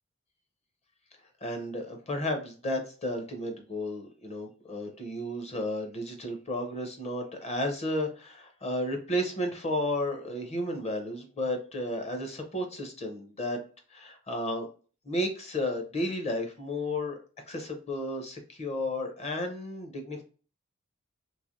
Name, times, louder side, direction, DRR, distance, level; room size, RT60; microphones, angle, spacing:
voice 1, 1.4-13.6 13.9-14.7 15.0-17.2 17.5-20.2, left 1 dB, 35° left, 4 dB, 0.7 m, -33 dB
3.2 x 2.9 x 2.5 m, 0.38 s
head